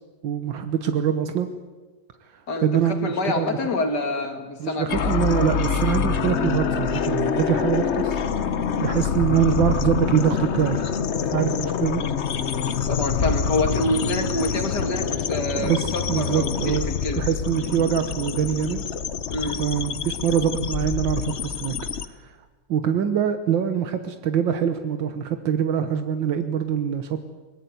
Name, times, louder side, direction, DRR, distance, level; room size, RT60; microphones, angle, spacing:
voice 1, 0.2-1.5 2.3-3.8 4.6-10.8 11.3-12.0 15.6-16.9 17.2-18.8 19.6-21.8 22.1-22.4 22.7-27.3, right 8 dB, 85° right, 8 dB, 1.9 m, -24 dB
voice 2, 2.5-5.2 8.9-9.1 12.9-17.2 19.3-19.6, left 2 dB, 60° left, 6 dB, 3.0 m, -27 dB
sound 1, 4.9-22.1, left 6 dB, 45° left, 1.0 m, -26 dB
22.5 x 19.5 x 9.5 m, 1.3 s
omnidirectional pair, 2.0 m